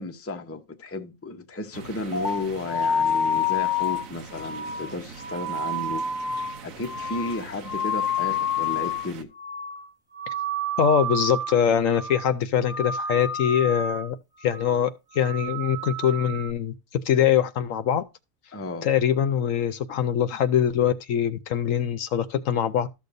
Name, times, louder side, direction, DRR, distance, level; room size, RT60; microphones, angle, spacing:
voice 1, 0.0-6.0 6.6-9.3 18.5-18.9, left 3 dB, 15° left, 0.6 m, -33 dB
sound 1, 1.7-9.2, right 6 dB, 70° right, 1.3 m, -43 dB
sound 2, 2.1-9.1 9.4-9.9 10.1-11.6 11.9-12.3 12.6-14.1 14.4-14.8 15.1-16.5, left 3 dB, 5° right, 1.2 m, -29 dB
voice 2, 10.8-14.1 14.4-16.7 17.0-18.0 18.8-22.9, left 9 dB, 70° left, 1.0 m, -23 dB
13.5 x 6.7 x 2.6 m
omnidirectional pair, 1.5 m